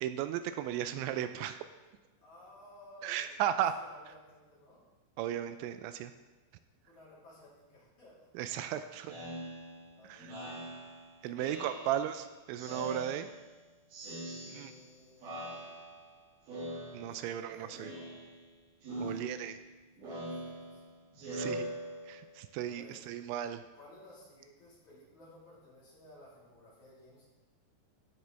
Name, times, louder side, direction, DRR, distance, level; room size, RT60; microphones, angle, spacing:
voice 1, 0.0-1.6 3.0-3.7 5.2-6.1 8.4-9.1 10.0-10.3 11.2-13.3 14.5-14.7 16.9-17.9 19.0-19.6 21.3-21.7 22.1-23.6, right 11 dB, 85° right, 10 dB, 2.9 m, -35 dB
voice 2, 2.2-4.8 6.9-8.2 8.5-8.8 9.9-10.4 11.2-11.9 12.6-12.8 14.1-15.8 17.1-18.3 18.9-19.3 20.0-20.8 22.6-23.1 23.8-27.3, left 1 dB, 45° left, -7 dB, 4.4 m, -57 dB
Speech synthesizer, 9.0-12.2 12.6-13.6 13.9-14.9 15.2-16.1 16.5-17.4 17.7-18.5 18.8-22.4, right 1 dB, 60° right, 4.2 m, -43 dB
17.5 x 6.8 x 3.4 m, 1.2 s
omnidirectional pair, 5.2 m